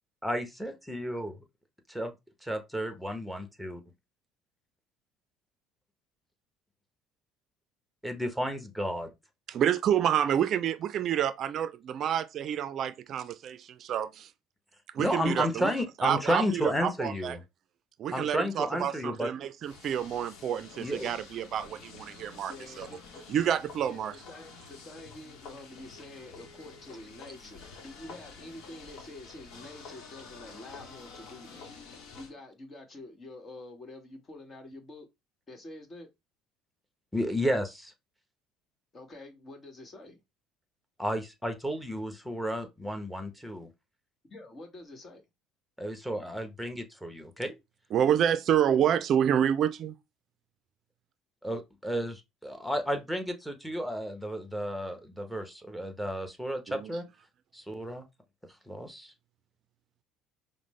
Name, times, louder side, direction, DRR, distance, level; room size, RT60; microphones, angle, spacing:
voice 1, 0.2-1.3 1.9-2.1 2.4-3.8 8.0-9.1 15.0-17.4 18.1-19.3 20.8-21.1 37.1-37.9 41.0-43.7 45.8-47.5 51.4-57.0 57.5-58.0 58.7-59.1, equal, ahead, 1.0 m, -32 dB
voice 2, 9.5-14.3 14.9-15.7 16.0-17.4 18.0-22.9 23.3-24.1 47.9-49.9 56.7-56.9, right 9 dB, 55° right, 0.4 m, -28 dB
sound 1, 19.6-32.3, left 4 dB, 70° left, 0.9 m, -49 dB
voice 3, 22.5-23.2 23.9-31.7 32.1-35.1 35.5-36.1 38.9-40.2 44.3-45.2 48.7-49.0, left 2 dB, 40° left, 1.3 m, -47 dB
5.0 x 2.1 x 3.2 m
supercardioid pair, 80°, 0 cm